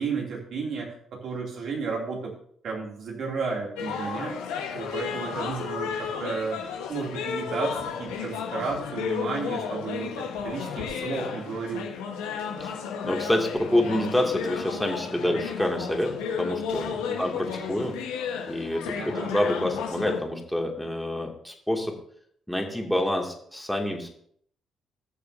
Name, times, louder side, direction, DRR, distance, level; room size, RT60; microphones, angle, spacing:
voice 1, 0.0-2.3 2.6-4.3 4.7-6.6 6.9-10.1 10.4-11.9 15.1-15.4 17.1-17.2 19.0-19.3, right 4 dB, 60° right, -1 dB, 3.0 m, -32 dB
sound 1, 3.8-20.2, left 6 dB, 85° left, 1.4 m, -33 dB
voice 2, 12.6-18.0 18.5-21.9 22.5-24.1, left 1 dB, ahead, 1 dB, 2.5 m, -27 dB
19.5 x 6.7 x 2.8 m, 0.63 s
hypercardioid pair, 50°, 0 cm